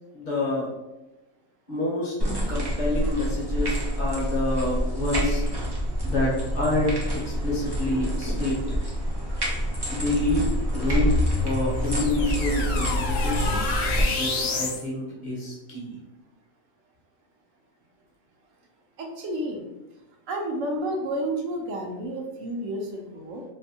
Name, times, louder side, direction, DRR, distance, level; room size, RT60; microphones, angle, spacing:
voice 1, 0.1-0.7 1.7-2.1 2.5-5.4 6.0-8.8 9.3-9.4 9.9-13.6 14.1-16.0, left 1 dB, 45° left, -3 dB, 0.7 m, -28 dB
sound 1, 2.2-14.0, equal, 35° right, 0.4 m, -27 dB
sound 2, 10.9-14.8, left 3 dB, 75° left, 0.9 m, -28 dB
voice 2, 19.0-19.6 20.3-23.4, right 1 dB, 75° right, 1 dB, 0.9 m, -30 dB
2.7 x 2.5 x 2.7 m, 0.99 s
omnidirectional pair, 1.4 m